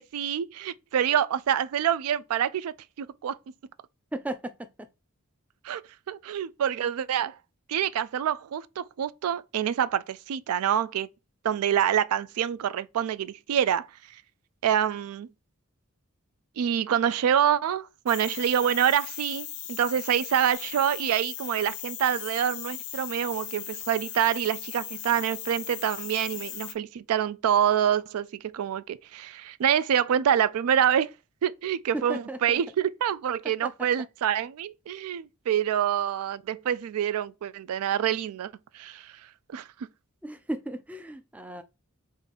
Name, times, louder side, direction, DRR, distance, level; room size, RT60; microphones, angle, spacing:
voice 1, 0.0-3.4 5.6-5.8 6.1-7.3 7.7-11.1 11.4-13.9 14.6-15.3 16.6-31.1 31.4-39.1 39.5-39.7, right 9 dB, 90° right, 0.3 m, -26 dB
voice 2, 4.1-4.9 31.9-32.6 33.6-33.9 40.2-41.6, right 1 dB, 5° right, 0.3 m, -35 dB
sound 1, 18.1-26.7, left 12 dB, 90° left, 0.5 m, -38 dB
3.7 x 2.5 x 4.0 m
head